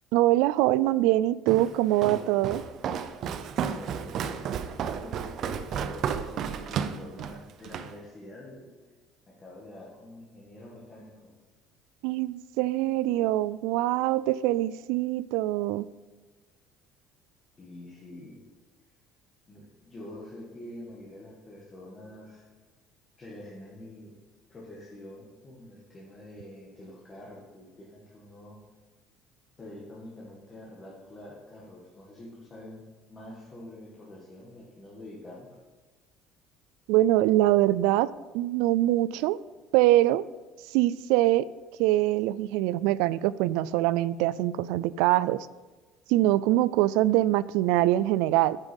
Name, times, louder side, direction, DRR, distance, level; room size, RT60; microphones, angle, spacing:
voice 1, 0.1-2.6 12.0-15.9 36.9-39.4 39.7-40.2 40.7-41.5 41.8-45.5 46.1-48.6, right 15 dB, 85° right, 18 dB, 0.3 m, -24 dB
Walk footsteps, 1.5-7.9, right 7 dB, 40° right, 0.6 m, -33 dB
voice 2, 3.5-8.7 9.3-11.3 17.6-18.4 19.5-22.4 23.2-24.1 24.5-28.6 29.6-32.8 33.1-35.5, left 1 dB, 20° left, -4 dB, 1.9 m, -46 dB
9.9 x 9.0 x 5.3 m, 1.3 s
cardioid pair, 170°, 0 cm